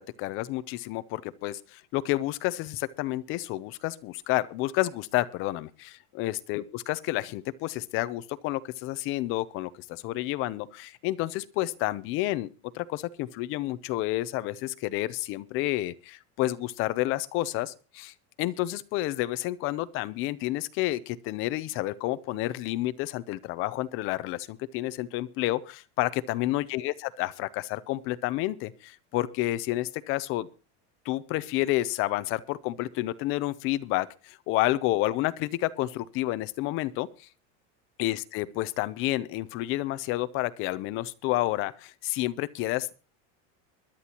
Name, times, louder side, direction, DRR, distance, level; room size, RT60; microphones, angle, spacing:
voice 1, 0.0-12.5 12.7-30.5 31.1-37.1 38.0-42.9, left 17 dB, 35° left, 15 dB, 0.6 m, -30 dB
22.0 x 11.5 x 2.9 m, 0.33 s
cardioid pair, 180°, 36 cm